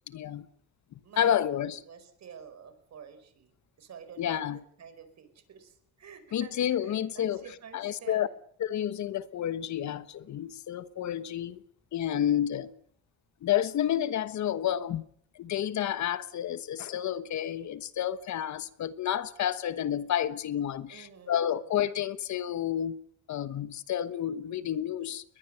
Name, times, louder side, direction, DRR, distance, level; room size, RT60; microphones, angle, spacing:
voice 1, 0.1-0.5 1.2-1.8 4.2-4.6 6.3-7.4 7.7-8.3 8.6-11.6 11.9-12.7 13.4-15.0 15.3-23.0 23.3-25.2, left 10 dB, 70° left, 1.3 m, -30 dB
voice 2, 1.0-3.5 3.8-4.4 4.8-8.3 20.9-21.4, right 7 dB, 60° right, 4.8 m, -49 dB
21.0 x 21.0 x 6.8 m
cardioid pair, 90°, 30 cm